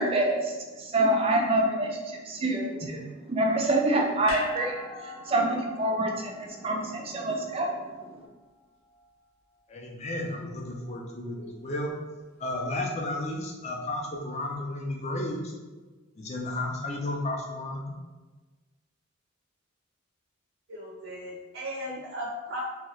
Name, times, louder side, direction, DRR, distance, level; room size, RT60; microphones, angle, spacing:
voice 1, 0.0-4.7 5.0-8.2, right 1 dB, 25° right, 1 dB, 0.4 m, -27 dB
sound 1, 4.3-8.6 8.9-9.0, left 1 dB, 80° left, 0.6 m, -42 dB
voice 2, 9.7-11.9 12.4-15.5 16.2-17.9, left 1 dB, 30° left, 0 dB, 0.4 m, -33 dB
voice 3, 20.7-22.6, equal, 75° right, -5 dB, 0.6 m, -37 dB
2.8 x 2.2 x 3.1 m, 1.3 s
head